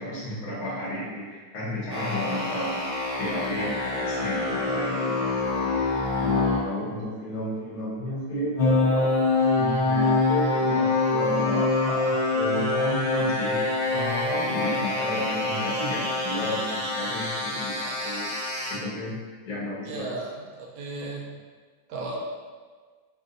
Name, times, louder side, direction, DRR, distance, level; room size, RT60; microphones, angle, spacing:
voice 1, 0.0-2.8 3.2-5.8 6.2-9.1 9.5-13.6 13.9-18.3 18.7-19.2 19.5-20.2, left 1 dB, 55° left, -8 dB, 1.4 m, -32 dB
sound 1, 1.9-6.6 8.5-18.7, left 3 dB, 80° left, 0.5 m, -25 dB
voice 2, 19.8-21.3 21.9-22.2, right 3 dB, 80° right, -2 dB, 1.3 m, -35 dB
3.8 x 2.4 x 2.5 m, 1.5 s
omnidirectional pair, 2.2 m